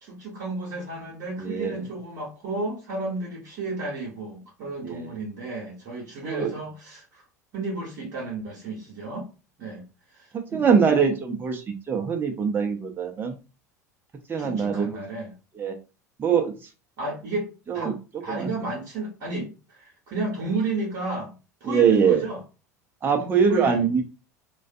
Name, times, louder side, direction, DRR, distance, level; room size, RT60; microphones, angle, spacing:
voice 1, 0.0-7.2 7.5-9.3 9.6-9.8 10.1-11.1 14.4-15.3 17.0-17.9 18.2-21.3 21.6-22.4 23.2-23.9, right 2 dB, 50° right, 0.9 m, -32 dB
voice 2, 1.4-1.8 4.8-5.1 6.2-6.5 10.5-13.4 14.3-15.0 15.6-15.7 16.2-16.6 17.7-17.9 18.3-18.5 21.6-22.2 23.0-24.0, right 6 dB, 20° right, 0.6 m, -23 dB
2.4 x 2.3 x 2.5 m
figure-of-eight pair, 75°, 9 cm